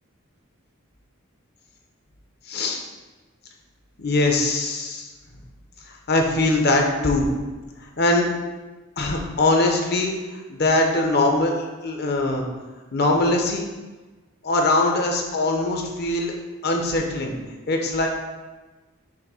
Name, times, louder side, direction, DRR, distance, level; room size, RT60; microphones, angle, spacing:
voice 1, 2.5-2.8 4.0-5.1 5.9-7.3 7.8-8.3 9.0-12.4 12.9-13.7 14.4-16.3 16.6-17.3 17.7-18.1, left 2 dB, 50° left, 1 dB, 0.8 m, -22 dB
6.5 x 2.7 x 5.5 m, 1.2 s
head